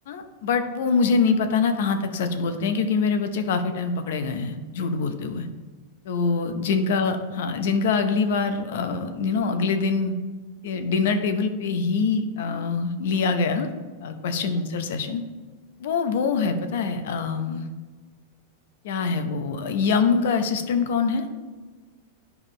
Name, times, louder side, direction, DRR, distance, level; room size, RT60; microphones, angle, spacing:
voice 1, 0.1-5.5 6.0-10.1 10.6-13.7 14.0-15.2 15.8-17.7 18.8-21.3, left 4 dB, 70° left, 8 dB, 0.8 m, -24 dB
11.0 x 4.7 x 3.3 m, 1.4 s
supercardioid pair, 150°, 0 cm